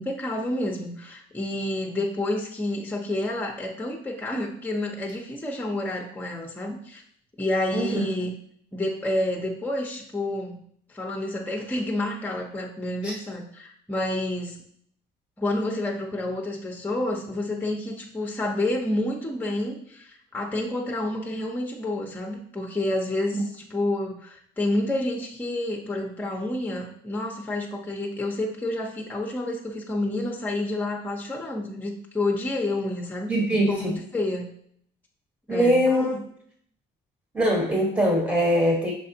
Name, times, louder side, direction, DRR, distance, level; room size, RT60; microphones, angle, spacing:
voice 1, 0.0-7.0 7.4-8.3 8.7-10.6 10.9-14.6 15.4-33.3 33.7-34.5 35.5-36.2, left 1 dB, 10° left, 0 dB, 0.8 m, -29 dB
voice 2, 7.7-8.0 13.0-13.1 23.3-23.4 33.3-34.0 35.5-36.1 37.3-38.9, equal, 15° right, -1 dB, 1.2 m, -22 dB
5.8 x 3.2 x 2.8 m, 0.64 s
cardioid pair, 90°, 20 cm